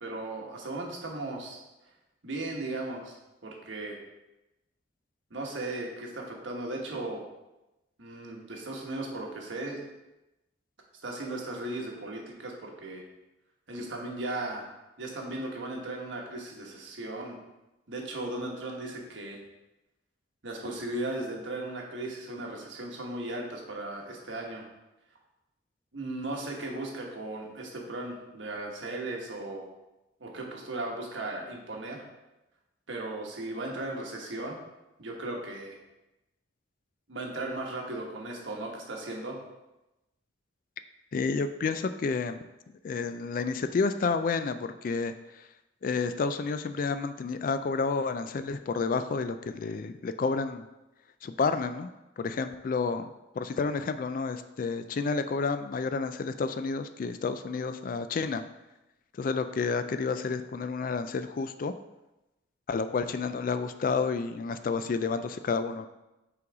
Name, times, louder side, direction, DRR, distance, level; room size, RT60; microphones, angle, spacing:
voice 1, 0.0-1.6 2.2-3.1 3.4-4.0 5.3-7.2 8.0-9.9 11.0-13.0 13.7-14.7 15.0-17.4 17.9-19.4 20.4-24.6 25.9-29.6 30.2-32.0 32.9-34.6 35.0-35.8 37.1-39.4, right 2 dB, 75° right, 0 dB, 1.2 m, -36 dB
voice 2, 41.1-42.4 42.8-45.5 45.8-50.6 51.2-51.9 52.2-58.4 59.2-61.7 62.7-65.9, left 4 dB, 45° left, 10 dB, 0.3 m, -30 dB
5.7 x 4.0 x 4.7 m, 0.98 s
head